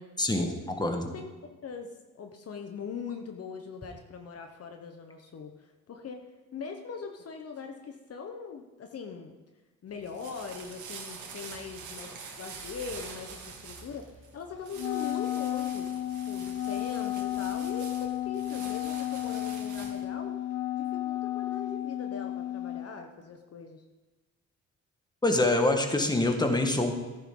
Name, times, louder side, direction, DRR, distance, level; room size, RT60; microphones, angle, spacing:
voice 1, 0.2-1.1 25.2-26.9, left 2 dB, 15° left, 4 dB, 1.6 m, -25 dB
voice 2, 1.1-9.3 9.8-14.1 14.3-16.0 16.3-20.4 20.7-23.8, left 5 dB, 50° left, 4 dB, 1.1 m, -41 dB
sound 1, 9.9-20.1, right 5 dB, 75° right, 2.1 m, -46 dB
Wind instrument woodwind instrument, 14.7-22.9, left 13 dB, 85° left, 0.9 m, -33 dB
14.0 x 10.0 x 3.9 m, 1.2 s
cardioid pair, 90°, 30 cm